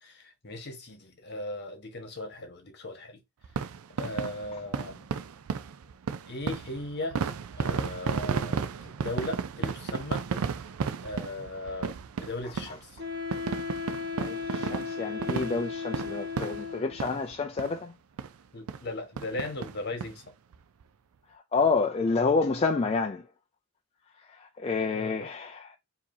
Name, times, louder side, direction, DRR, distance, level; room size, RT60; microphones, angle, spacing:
voice 1, 0.0-3.2 4.0-5.1 6.3-7.2 7.5-10.2 11.0-13.0 16.4-16.5 17.0-17.2 18.5-20.3 24.9-25.3, left 2 dB, 50° left, 1.3 m, -38 dB
sound 1, 3.4-17.3 17.6-17.8 18.2-18.3 18.7-18.8 19.2-20.1 20.5-20.6 20.8-20.9, right 6 dB, 75° right, 0.4 m, -33 dB
Wind instrument woodwind instrument, 13.0-17.1, left 5 dB, 55° right, 1.3 m, -36 dB
voice 2, 14.2-17.9 21.3-23.3 24.2-25.8, left 4 dB, 30° left, 0.4 m, -29 dB
4.8 x 2.8 x 2.7 m
head